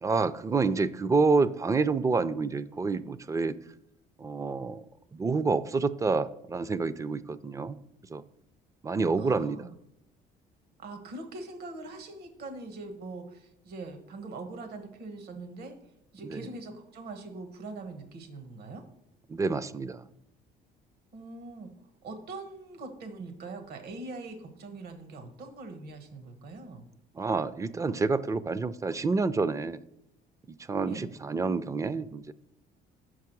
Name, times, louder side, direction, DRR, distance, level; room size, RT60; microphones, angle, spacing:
voice 1, 0.0-3.6 4.2-4.8 5.1-7.8 8.1-8.2 8.8-9.7 16.3-16.4 19.3-20.1 27.1-29.8 30.5-32.3, right 4 dB, 20° right, 15 dB, 0.3 m, -28 dB
voice 2, 9.2-9.7 10.8-15.8 16.1-18.8 21.1-21.7 22.0-26.9 30.8-31.1, right 3 dB, 70° right, 7 dB, 1.2 m, -42 dB
6.2 x 4.7 x 6.0 m, 0.78 s
cardioid pair, 110°, 17 cm